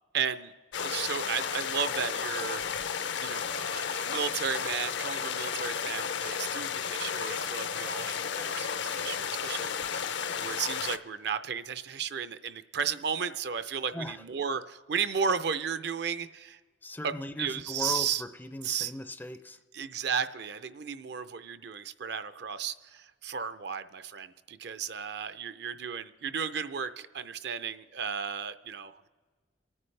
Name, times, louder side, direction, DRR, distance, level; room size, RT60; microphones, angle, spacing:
voice 1, 0.1-0.5 0.8-2.6 3.2-10.2 10.4-16.6 17.0-17.1 17.4-18.2 18.6-18.9 19.7-29.1, right 7 dB, 60° right, 12 dB, 0.5 m, -34 dB
sound 1, 0.7-11.0, left 7 dB, 65° left, 0.5 m, -33 dB
voice 2, 16.8-19.6, left 1 dB, 10° left, 10 dB, 0.4 m, -38 dB
28.0 x 9.7 x 3.3 m, 1.5 s
head